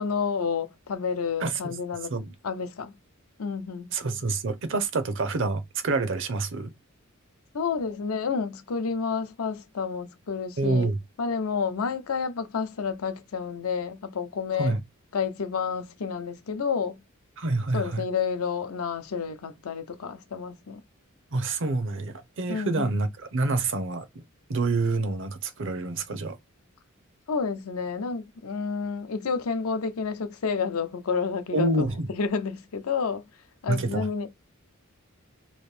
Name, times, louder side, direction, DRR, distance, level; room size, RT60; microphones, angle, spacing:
voice 1, 0.0-2.1 2.4-2.9 3.4-3.9 7.5-10.9 11.2-14.8 15.1-17.0 17.7-20.8 22.5-22.9 27.3-33.2 33.6-34.3, left 5 dB, 85° left, 0.6 m, -30 dB
voice 2, 1.4-1.8 2.1-2.3 3.9-6.7 10.6-11.0 14.6-14.8 17.4-18.0 21.3-24.1 24.5-26.4 31.5-32.1 33.7-34.1, right 3 dB, 60° right, 0.7 m, -27 dB
3.0 x 2.6 x 3.2 m
head